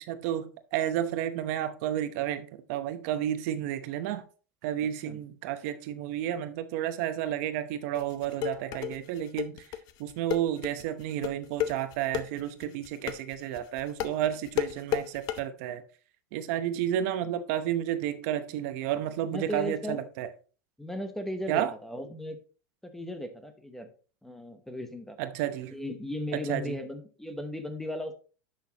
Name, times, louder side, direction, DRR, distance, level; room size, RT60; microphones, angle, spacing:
voice 1, 0.1-4.2 4.6-9.6 10.0-15.8 16.3-20.3 21.5-21.7 25.2-25.7 26.5-26.8, right 11 dB, 55° right, 0.8 m, -31 dB
sound 1, 7.9-15.4, left 11 dB, 40° left, 0.8 m, -32 dB
voice 2, 19.2-20.1 20.8-22.4 22.8-23.9 24.2-25.2 25.7-28.1, left 1 dB, 5° left, 0.8 m, -36 dB
10.5 x 6.2 x 2.9 m
supercardioid pair, 145°, 10 cm